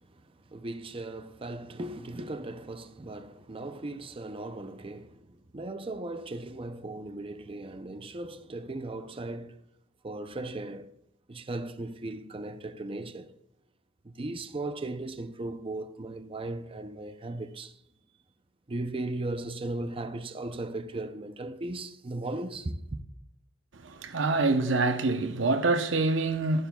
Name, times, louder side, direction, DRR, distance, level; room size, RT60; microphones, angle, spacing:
voice 1, 0.5-5.1 5.5-9.5 10.0-10.9 11.3-13.3 14.0-17.7 18.7-23.0, right 2 dB, 30° right, 0.6 m, -37 dB
voice 2, 23.8-26.7, right 3 dB, 85° right, 0.8 m, -26 dB
13.5 x 11.5 x 2.3 m
head